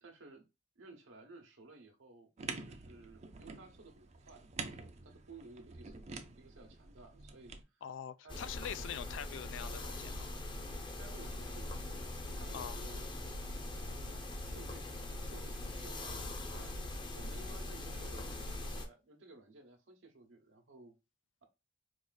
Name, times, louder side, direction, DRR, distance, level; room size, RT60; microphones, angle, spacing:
voice 1, 0.0-0.4 0.8-2.3 2.6-7.8 8.2-8.4 8.8-8.9 10.9-20.9, right 2 dB, 85° right, 0.9 m, -56 dB
sound 1, 2.4-7.6, right 4 dB, 35° right, 0.5 m, -47 dB
voice 2, 7.8-10.3 12.5-12.8, left 8 dB, 75° left, 0.3 m, -44 dB
sound 2, 8.3-18.9, left 2 dB, 25° left, 0.6 m, -42 dB
4.7 x 2.4 x 2.2 m
head